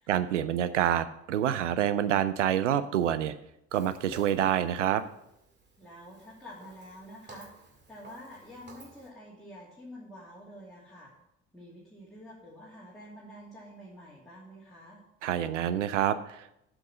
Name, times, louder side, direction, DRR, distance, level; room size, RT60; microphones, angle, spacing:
voice 1, 0.1-3.3 3.7-5.0 15.2-16.5, right 10 dB, 80° right, 14 dB, 0.5 m, -27 dB
Walk footsteps, 3.7-9.1, right 3 dB, 30° right, 2.0 m, -52 dB
voice 2, 5.8-7.5 7.9-11.1 11.5-15.0, equal, ahead, -8 dB, 2.6 m, -48 dB
8.1 x 6.3 x 6.2 m, 0.80 s
figure-of-eight pair, 55°, 36 cm